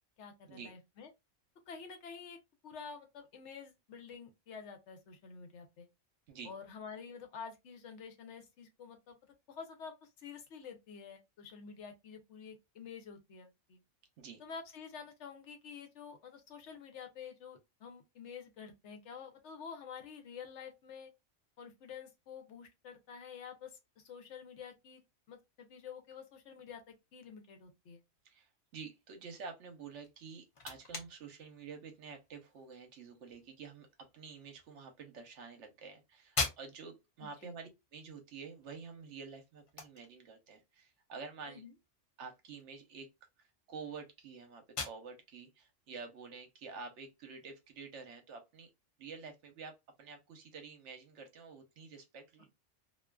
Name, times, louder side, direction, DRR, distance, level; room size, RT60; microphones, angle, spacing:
voice 1, 0.2-1.1 1.7-2.4 2.6-5.9 6.4-9.2 9.5-13.8 14.4-21.1 21.6-25.0 25.3-28.0 37.4-37.5 41.5-41.7, left 6 dB, 75° left, 0.9 m, -49 dB
voice 2, 28.2-41.6 42.2-43.1 43.4-48.7 49.0-52.5, right 5 dB, 75° right, 1.0 m, -49 dB
sound 1, 30.0-47.7, left 3 dB, 55° left, 0.3 m, -46 dB
2.4 x 2.3 x 2.2 m
omnidirectional pair, 1.2 m